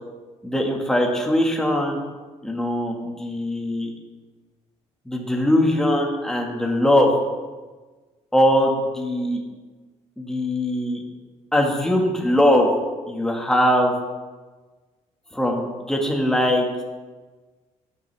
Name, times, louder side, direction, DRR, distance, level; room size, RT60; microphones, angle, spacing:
voice 1, 0.4-2.0 2.4-3.9 5.0-7.1 8.3-9.4 10.2-11.0 11.5-12.7 13.1-13.9 15.3-16.7, left 1 dB, 5° left, 0 dB, 1.7 m, -21 dB
13.5 x 11.0 x 3.4 m, 1.3 s
cardioid pair, 160°, 12 cm